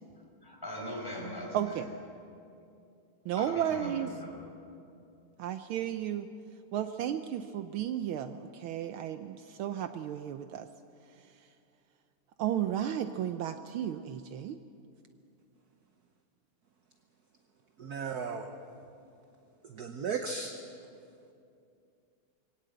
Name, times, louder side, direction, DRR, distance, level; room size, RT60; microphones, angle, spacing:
voice 1, 0.4-1.8 3.3-4.4, equal, 10° left, -3 dB, 5.6 m, -40 dB
voice 2, 1.5-1.8 3.2-4.1 5.4-6.3 6.7-10.7 12.4-14.6, right 10 dB, 75° right, 9 dB, 1.5 m, -33 dB
voice 3, 17.8-18.5 19.6-20.6, right 5 dB, 55° right, 6 dB, 1.2 m, -35 dB
23.5 x 17.5 x 7.9 m, 2.5 s
omnidirectional pair, 2.4 m